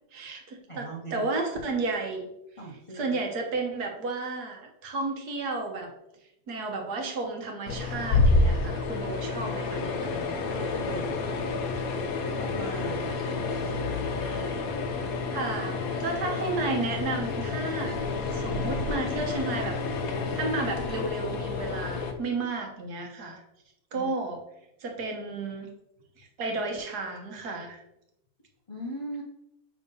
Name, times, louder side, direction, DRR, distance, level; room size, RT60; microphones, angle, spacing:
voice 1, 0.1-2.3 2.9-5.9 6.5-10.3 13.3-13.4 14.2-14.6 15.3-18.0 18.3-19.8 20.3-23.4 23.9-24.4 24.8-25.7 26.2-27.8, right 3 dB, 65° right, 2 dB, 1.8 m, -32 dB
voice 2, 0.7-1.3 2.6-3.2 10.4-11.5 12.2-13.0 23.9-24.1 28.7-29.2, right 1 dB, 25° left, -3 dB, 0.9 m, -39 dB
sound 1, 7.7-22.1, left 3 dB, 60° left, 1.2 m, -29 dB
sound 2, 7.9-21.1, left 2 dB, 45° right, 1.5 m, -42 dB
7.4 x 3.7 x 5.4 m, 0.85 s
omnidirectional pair, 1.8 m